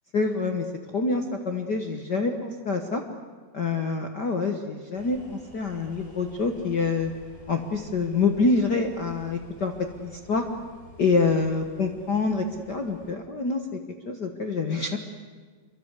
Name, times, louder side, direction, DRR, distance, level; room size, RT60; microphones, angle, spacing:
voice 1, 0.1-0.7 0.9-3.0 3.5-7.1 7.5-9.7 10.0-10.5 11.0-13.7 14.0-15.0, left 4 dB, 85° left, 4 dB, 0.9 m, -26 dB
sound 1, 4.9-13.1, equal, 15° left, 6.1 m, -50 dB
26.5 x 24.0 x 8.2 m, 1.5 s
omnidirectional pair, 4.2 m